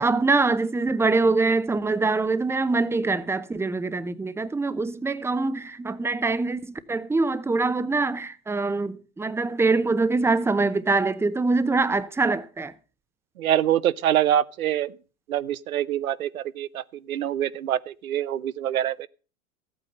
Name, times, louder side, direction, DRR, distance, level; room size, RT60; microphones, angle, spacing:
voice 1, 0.0-12.7, right 3 dB, 5° right, 0.7 m, -24 dB
voice 2, 13.4-14.9 15.3-19.1, right 11 dB, 90° right, 0.7 m, -25 dB
14.5 x 8.7 x 5.3 m
hypercardioid pair, 95°, 41 cm